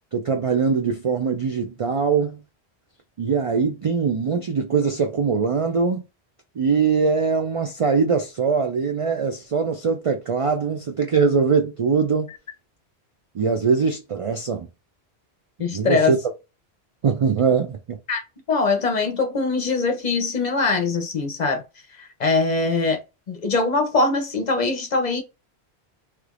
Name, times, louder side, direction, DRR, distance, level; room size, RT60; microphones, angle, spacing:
voice 1, 0.1-2.4 3.2-6.0 6.6-12.3 13.3-14.7 15.7-16.2 17.0-18.0, right 5 dB, 60° right, 0.3 m, -22 dB
voice 2, 15.6-16.1 18.1-18.2 18.5-21.6 21.9-23.0 23.3-25.2, left 3 dB, 45° left, 0.8 m, -22 dB
3.3 x 3.1 x 2.4 m
omnidirectional pair, 1.1 m